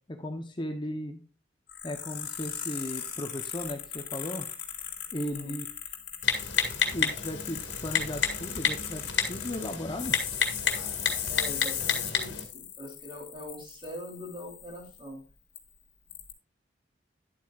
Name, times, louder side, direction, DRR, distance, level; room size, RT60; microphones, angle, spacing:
voice 1, 0.1-1.2 1.8-4.5 5.1-5.7 6.9-10.2, left 1 dB, 25° left, 5 dB, 0.8 m, -36 dB
sound 1, 1.7-15.1 15.6-15.7 16.1-16.3, left 9 dB, 55° left, 1.8 m, -38 dB
Typing, 6.2-12.4, left 6 dB, 85° left, 1.7 m, -30 dB
voice 2, 11.3-15.2, left 1 dB, 25° right, -1 dB, 3.2 m, -42 dB
10.5 x 8.1 x 2.4 m, 0.37 s
head